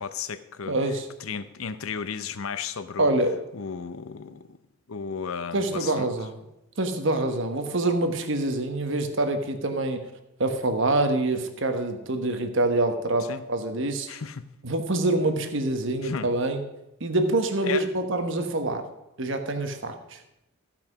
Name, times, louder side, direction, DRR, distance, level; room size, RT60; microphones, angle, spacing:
voice 1, 0.0-0.8 1.2-3.1 3.5-4.6 4.9-6.1 13.3-13.4 14.1-14.4 16.0-16.3 17.6-17.9, left 6 dB, 75° left, 13 dB, 0.7 m, -34 dB
voice 2, 0.7-1.1 3.0-3.3 5.5-6.3 6.8-10.0 10.4-14.1 14.6-16.6 17.0-18.9 19.2-20.2, right 2 dB, 60° right, 7 dB, 1.2 m, -25 dB
15.0 x 5.9 x 6.1 m, 0.90 s
head